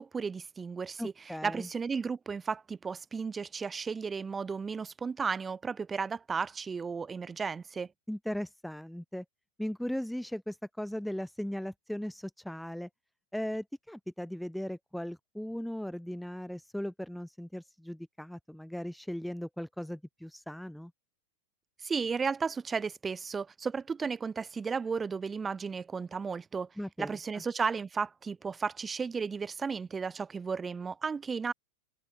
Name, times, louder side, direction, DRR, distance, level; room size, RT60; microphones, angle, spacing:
voice 1, 0.0-1.1 1.4-7.9 21.8-26.7 27.0-31.5, right 5 dB, 15° right, 5.9 m, -34 dB
voice 2, 1.0-1.7 8.1-9.2 9.6-12.9 13.3-20.9 26.8-27.4, equal, ahead, 4.8 m, -38 dB
figure-of-eight pair, 90°, 0 cm